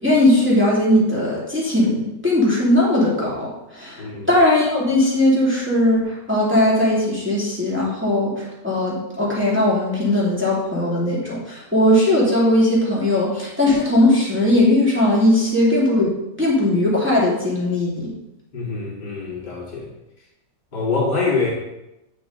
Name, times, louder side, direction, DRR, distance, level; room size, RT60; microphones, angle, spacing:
voice 1, 0.0-16.1 16.4-18.1, left 1 dB, 5° right, -7 dB, 2.4 m, -18 dB
voice 2, 4.0-4.3 18.5-19.9 20.7-21.5, left 4 dB, 70° left, -4 dB, 2.8 m, -24 dB
9.0 x 6.1 x 3.8 m, 0.90 s
omnidirectional pair, 1.9 m